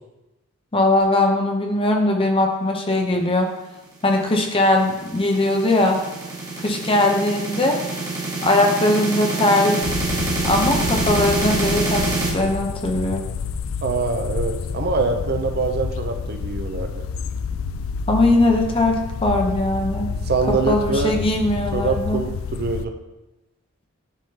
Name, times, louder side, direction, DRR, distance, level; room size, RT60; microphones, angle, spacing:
voice 1, 0.7-3.5 4.0-6.0 6.6-7.8 8.4-9.8 10.4-12.0 12.3-13.2 18.1-20.1 20.5-22.2, left 2 dB, 25° left, 2 dB, 0.8 m, -20 dB
sound 1, 4.2-12.3, right 3 dB, 15° right, 1.6 m, -26 dB
sound 2, 9.8-22.9, left 5 dB, 75° left, 0.3 m, -29 dB
voice 2, 13.8-17.0 20.3-21.2 21.7-22.9, right 4 dB, 50° right, 6 dB, 0.6 m, -24 dB
11.0 x 3.6 x 2.9 m, 1.0 s
head